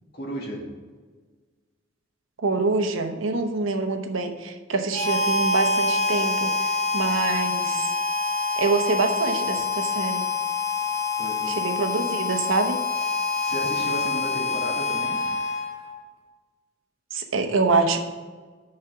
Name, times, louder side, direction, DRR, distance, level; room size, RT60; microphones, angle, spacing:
voice 1, 0.1-0.7 11.2-11.6 13.4-15.2, equal, 50° left, -2 dB, 2.2 m, -33 dB
voice 2, 2.4-6.5 6.9-7.9 8.6-10.2 11.6-12.8 17.1-18.0, right 3 dB, 75° right, 6 dB, 0.9 m, -25 dB
Harmonica, 4.9-15.9, left 3 dB, 35° left, 1.9 m, -26 dB
6.6 x 5.9 x 6.8 m, 1.4 s
head